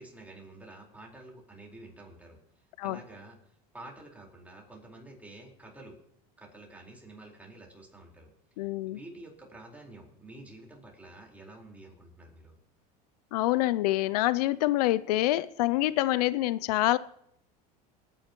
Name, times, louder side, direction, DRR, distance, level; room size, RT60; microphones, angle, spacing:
voice 1, 0.0-2.4 2.8-3.4 3.7-6.0 6.4-8.3 8.9-12.5, right 2 dB, 5° right, 4.4 m, -49 dB
voice 2, 8.6-9.0 13.3-17.0, left 16 dB, 90° left, 0.5 m, -26 dB
26.5 x 10.0 x 3.0 m
supercardioid pair, 105°, 20 cm